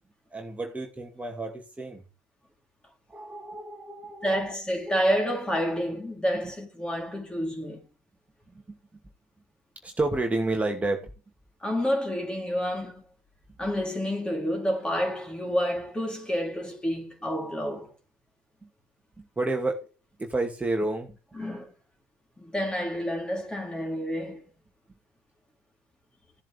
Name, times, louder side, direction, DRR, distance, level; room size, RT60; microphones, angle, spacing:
voice 1, 0.3-2.0 3.1-4.5 4.9-5.0 9.8-11.1 18.6-18.7 19.4-19.9 20.2-21.2, right 2 dB, 15° right, 2.4 m, -30 dB
voice 2, 4.2-7.8 11.6-13.0 13.6-17.9 21.3-21.7 22.4-24.5, equal, 10° left, 3.9 m, -29 dB
16.0 x 7.4 x 3.6 m
hypercardioid pair, 60°, 8 cm